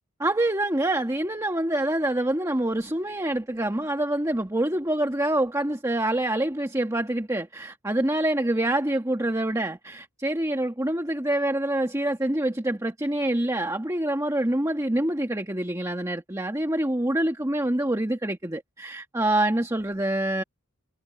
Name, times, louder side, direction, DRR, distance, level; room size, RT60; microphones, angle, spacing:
voice 1, 0.2-20.4, right 1 dB, 15° right, 1.5 m, -26 dB
head